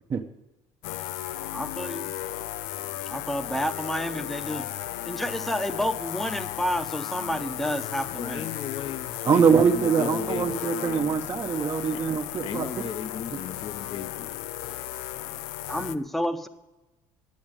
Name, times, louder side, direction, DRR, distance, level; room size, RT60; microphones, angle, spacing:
sound 1, 0.8-16.0, left 14 dB, 85° left, 0.5 m, -35 dB
voice 1, 1.5-2.1 3.1-4.6 5.1-8.5 15.7-16.5, equal, ahead, 0.8 m, -30 dB
voice 2, 8.1-11.0 11.9-12.0 12.4-14.4, left 7 dB, 45° left, 0.9 m, -36 dB
voice 3, 9.2-12.7, right 6 dB, 30° right, 0.8 m, -23 dB
9.5 x 8.6 x 8.9 m
cardioid pair, 120°, 12 cm